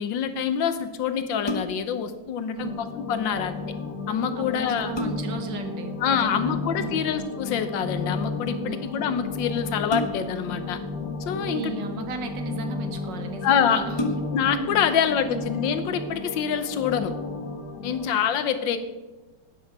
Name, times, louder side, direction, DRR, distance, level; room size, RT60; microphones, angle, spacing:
voice 1, 0.0-3.6 4.1-4.9 6.0-10.8 11.3-11.7 13.4-13.8 14.3-17.1 17.8-18.8, left 8 dB, 75° left, 10 dB, 1.6 m, -26 dB
sound 1, 1.4-2.0 4.0-4.1 4.6-5.5 7.1-7.4 9.9-10.5 11.5-12.2 12.9-13.0 13.3-13.4 13.9-14.6 15.1-15.2, left 1 dB, 30° left, 0.4 m, -32 dB
sound 2, 2.6-18.1, left 4 dB, 60° left, 2.2 m, -33 dB
voice 2, 4.3-7.1 8.6-8.8 11.4-14.2 14.9-15.4, right 5 dB, 65° right, 6 dB, 1.9 m, -35 dB
12.0 x 9.4 x 4.7 m, 1.1 s
omnidirectional pair, 2.1 m